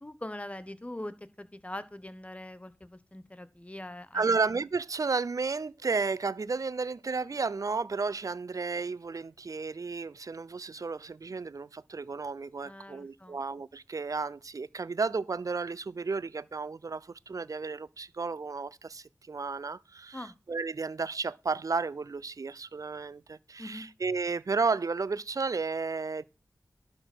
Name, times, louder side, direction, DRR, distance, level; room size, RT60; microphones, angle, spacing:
voice 1, 0.0-4.3 12.6-13.4 20.1-20.3 23.6-23.9, left 1 dB, 20° left, 1.0 m, -42 dB
voice 2, 4.1-26.2, right 4 dB, 55° right, 0.5 m, -33 dB
11.5 x 4.2 x 6.0 m
cardioid pair, 45°, 7 cm